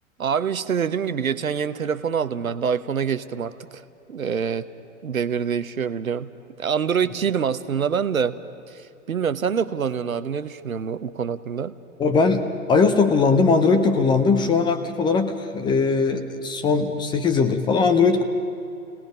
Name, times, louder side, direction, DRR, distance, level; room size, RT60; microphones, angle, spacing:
voice 1, 0.2-3.8 4.1-4.7 5.0-6.3 6.6-8.4 8.7-11.7, right 7 dB, 70° right, 13 dB, 0.9 m, -25 dB
voice 2, 12.0-18.2, left 4 dB, 10° left, 7 dB, 0.7 m, -20 dB
29.5 x 18.5 x 5.1 m, 2.7 s
figure-of-eight pair, 110°, 43 cm